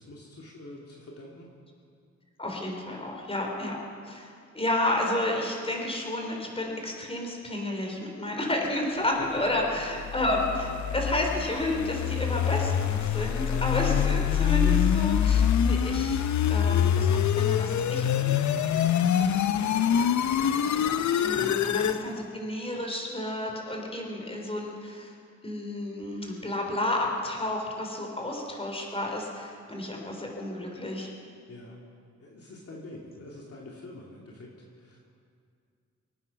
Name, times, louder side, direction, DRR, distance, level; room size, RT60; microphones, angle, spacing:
voice 1, 0.0-1.5 9.2-9.6 18.7-19.0 19.5-21.6 31.5-31.8 32.2-35.0, left 2 dB, 50° left, -2 dB, 2.5 m, -45 dB
voice 2, 2.4-3.8 4.1-16.2 16.5-18.4 21.2-25.1 25.4-31.1, left 1 dB, 20° left, 0 dB, 3.6 m, -31 dB
sound 1, 9.8-22.0, left 9 dB, 70° left, 0.7 m, -25 dB
24.5 x 9.6 x 5.9 m, 2.3 s
cardioid pair, 80°, 30 cm